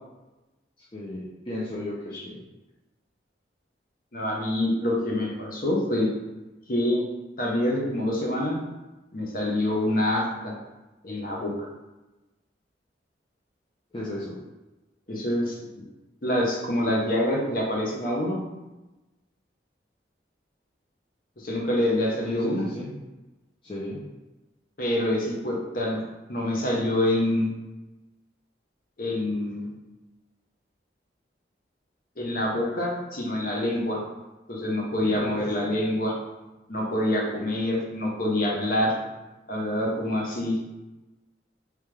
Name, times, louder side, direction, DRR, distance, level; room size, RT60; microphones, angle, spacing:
voice 1, 0.8-2.4 4.8-4.9 13.9-14.4 22.2-22.9 23.6-24.0 35.1-35.6 37.3-37.4, left 1 dB, 30° left, -7 dB, 0.6 m, -35 dB
voice 2, 4.1-6.1 6.7-7.0 7.4-8.6 9.1-10.5 11.0-11.7 15.1-15.6 16.2-18.4 21.4-22.7 24.8-26.0 26.3-27.5 29.0-29.7 32.2-34.0 34.5-36.1 36.7-39.0 39.5-40.6, left 1 dB, 50° left, -2 dB, 0.9 m, -26 dB
3.4 x 3.4 x 3.2 m, 1.1 s
head